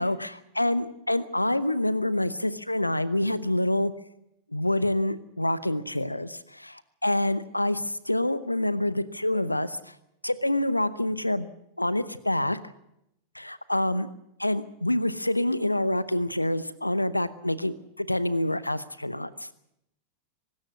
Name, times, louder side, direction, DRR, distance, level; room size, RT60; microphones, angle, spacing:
voice 1, 0.0-3.9 4.5-10.0 10.2-11.5 11.8-12.6 13.3-14.1 14.4-19.5, left 1 dB, 85° left, 17 dB, 0.8 m, -27 dB
24.0 x 13.0 x 9.6 m, 0.82 s
figure-of-eight pair, 90°, 0 cm